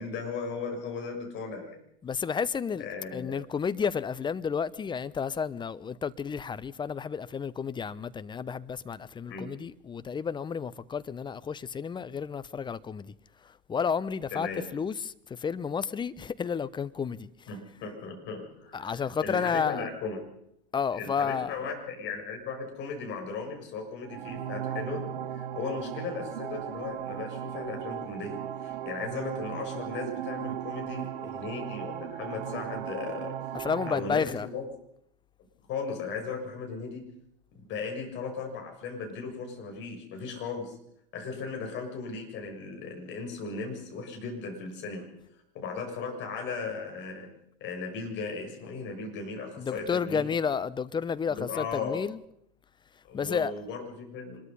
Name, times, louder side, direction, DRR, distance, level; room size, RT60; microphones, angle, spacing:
voice 1, 0.0-1.8 2.8-3.4 9.3-9.5 14.3-14.6 17.5-20.2 20.9-25.0 25.3-33.4 33.9-34.6 35.7-37.0 37.7-40.8 41.1-45.1 45.5-47.3 47.6-50.3 51.3-52.0 53.1-54.4, left 4 dB, 40° left, 7.2 m, -37 dB
voice 2, 2.0-2.9 3.1-13.1 13.4-17.3 18.7-19.9 20.7-21.5 33.5-34.5 49.6-52.2 53.1-53.5, left 6 dB, 15° left, 0.8 m, -31 dB
sound 1, 24.0-34.0, right 10 dB, 60° right, 1.7 m, -37 dB
25.5 x 22.0 x 5.6 m
figure-of-eight pair, 95°, 29 cm